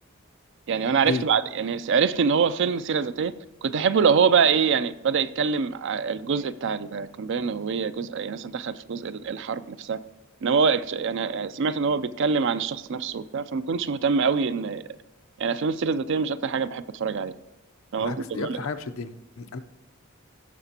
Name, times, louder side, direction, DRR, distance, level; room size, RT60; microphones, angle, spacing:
voice 1, 0.7-3.3 3.6-10.0 10.4-14.8 15.4-17.3 17.9-18.6, right 5 dB, 60° right, 0.4 m, -25 dB
voice 2, 18.0-19.6, left 4 dB, 85° left, 0.7 m, -32 dB
16.0 x 6.8 x 2.9 m
head